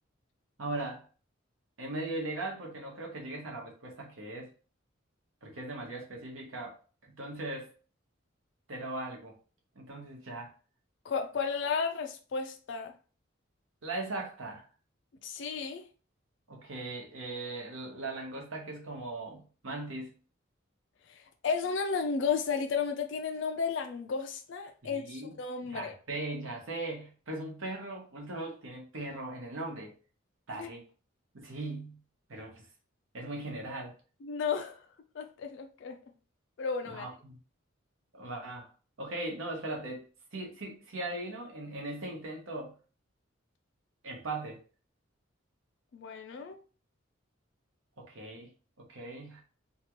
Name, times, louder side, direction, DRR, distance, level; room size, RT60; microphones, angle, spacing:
voice 1, 0.6-1.0 1.8-4.5 5.4-6.8 7.1-7.7 8.7-9.3 9.7-10.5 13.8-14.6 16.5-20.1 24.8-25.4 25.7-29.9 30.5-30.8 31.3-32.0 32.3-32.7 33.1-33.9 36.9-37.4 38.1-38.7 39.0-42.7 44.0-44.6 48.0-48.5 48.8-49.4, right 2 dB, 75° right, 1.0 m, -39 dB
voice 2, 11.0-12.9 15.2-15.8 21.1-25.1 25.4-25.9 30.6-30.7 34.2-34.8 35.1-36.0 36.6-37.1 45.9-46.6, left 5 dB, 60° left, 0.4 m, -33 dB
2.9 x 2.3 x 2.9 m
head